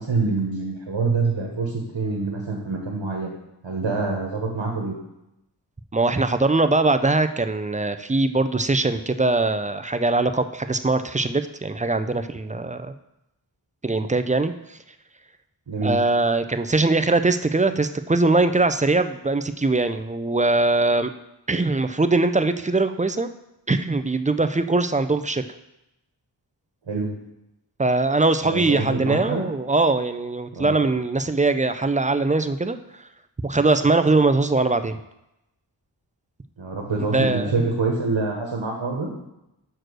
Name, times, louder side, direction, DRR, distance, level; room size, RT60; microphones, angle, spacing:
voice 1, 0.0-3.3 3.6-5.0 15.7-16.0 26.9-27.1 28.4-29.5 30.5-30.8 36.6-39.1, right 3 dB, 80° right, -1 dB, 1.4 m, -26 dB
voice 2, 5.9-12.9 13.8-14.8 15.8-21.1 21.5-23.3 23.7-25.4 27.8-32.8 33.4-35.0 37.1-37.6, right 3 dB, 20° right, 9 dB, 0.4 m, -21 dB
6.2 x 4.7 x 6.3 m, 0.88 s
wide cardioid pair, 55°, 44 cm